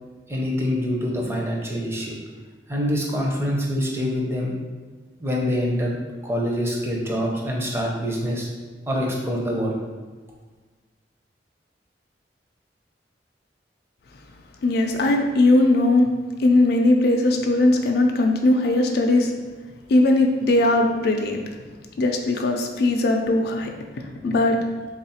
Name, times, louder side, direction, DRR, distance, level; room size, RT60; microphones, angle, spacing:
voice 1, 0.3-2.2 2.7-4.5 5.2-6.0 6.2-8.5 8.9-9.8, equal, 15° right, -2 dB, 0.6 m, -25 dB
voice 2, 14.6-16.1 16.4-19.3 19.9-21.4 22.0-23.7 24.2-24.6, left 2 dB, 60° left, 3 dB, 0.3 m, -19 dB
3.4 x 2.4 x 4.2 m, 1.4 s
head